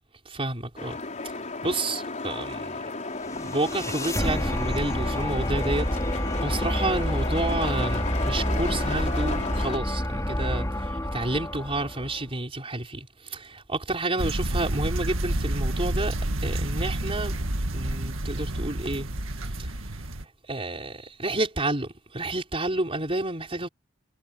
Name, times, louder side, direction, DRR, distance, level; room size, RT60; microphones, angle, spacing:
voice 1, 0.2-1.0 1.2-2.8 3.3-17.4 17.7-19.1 19.4-19.7 20.5-23.7, right 2 dB, 30° right, 4.7 m, -30 dB
sound 1, 0.8-9.8, left 3 dB, 35° left, 4.8 m, -34 dB
sound 2, 3.1-12.3, equal, 15° left, 5.1 m, -28 dB
sound 3, 14.2-20.3, right 1 dB, 70° right, 2.1 m, -29 dB
head